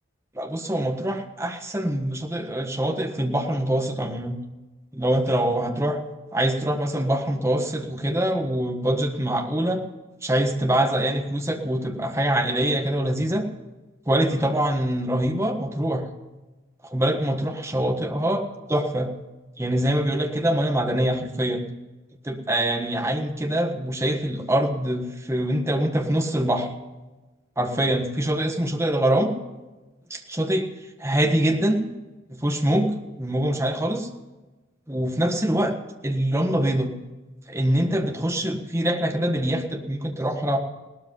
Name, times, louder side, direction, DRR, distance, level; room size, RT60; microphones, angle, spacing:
voice 1, 0.3-4.4 4.9-6.0 6.3-9.8 10.2-13.4 14.1-16.1 16.8-19.1 19.6-21.6 22.2-26.7 27.6-29.3 30.1-30.7 31.0-31.8 32.3-34.1 34.9-35.7 36.0-36.9 37.5-40.6, right 1 dB, 15° right, 3 dB, 1.5 m, -24 dB
17.5 x 13.0 x 5.6 m, 1.1 s
head